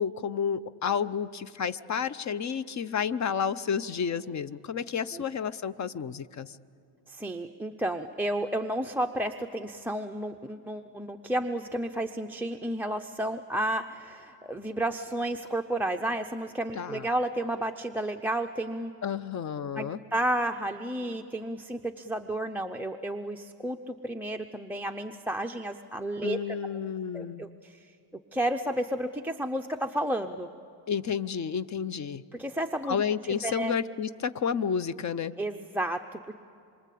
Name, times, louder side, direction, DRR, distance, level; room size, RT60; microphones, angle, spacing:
voice 1, 0.0-6.6 16.7-17.1 19.0-20.0 26.2-27.4 30.9-32.2 32.9-35.3, left 7 dB, 40° left, 15 dB, 0.7 m, -31 dB
voice 2, 7.1-18.9 19.7-27.9 28.3-30.5 32.4-33.7 35.4-36.3, right 1 dB, 5° right, 8 dB, 0.6 m, -32 dB
27.0 x 24.0 x 8.4 m, 2.5 s
cardioid pair, 130°, 45 cm